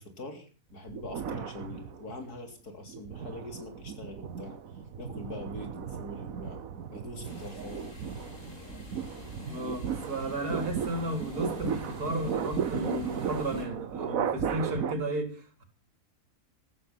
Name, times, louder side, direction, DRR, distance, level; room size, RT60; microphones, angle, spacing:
voice 1, 0.0-4.6 5.0-8.1, left 2 dB, 85° left, 4.0 m, -43 dB
sound 1, 0.9-2.3 2.8-14.9, right 7 dB, 65° right, 1.4 m, -36 dB
sound 2, 7.2-13.6, left 2 dB, 55° left, 5.1 m, -47 dB
voice 2, 9.5-15.6, right 1 dB, 85° right, 4.0 m, -34 dB
15.0 x 14.0 x 5.9 m
omnidirectional pair, 1.6 m